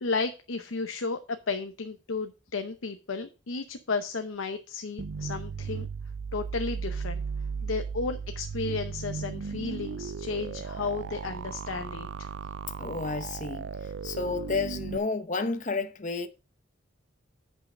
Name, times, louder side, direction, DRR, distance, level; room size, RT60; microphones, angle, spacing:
voice 1, 0.0-5.9 6.3-7.2 7.6-12.3, left 4 dB, 90° left, 0.8 m, -33 dB
sound 1, 5.0-15.0, right 5 dB, 65° right, 0.4 m, -36 dB
voice 2, 12.8-13.6 14.0-16.3, left 4 dB, 40° left, 0.8 m, -31 dB
8.4 x 5.6 x 5.1 m
head